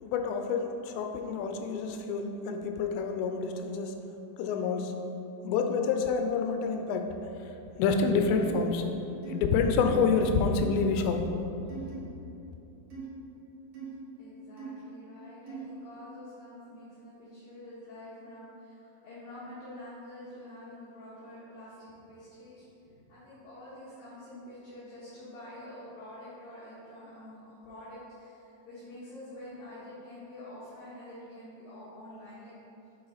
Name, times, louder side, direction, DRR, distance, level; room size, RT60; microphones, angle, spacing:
voice 1, 0.0-3.9 4.4-4.9 5.4-7.1 7.8-8.8 9.3-11.2, left 5 dB, 85° left, 5 dB, 2.8 m, -28 dB
sound 1, 8.4-8.6 9.2-9.3 9.9-10.0 10.6-10.8 11.7-11.9 12.9-13.1 13.7-13.9 14.6-14.7 15.5-15.6, right 7 dB, 65° right, 2.8 m, -41 dB
voice 2, 14.2-32.5, left 1 dB, 65° left, -12 dB, 2.9 m, -47 dB
8.7 x 4.6 x 3.9 m, 2.9 s
omnidirectional pair, 4.9 m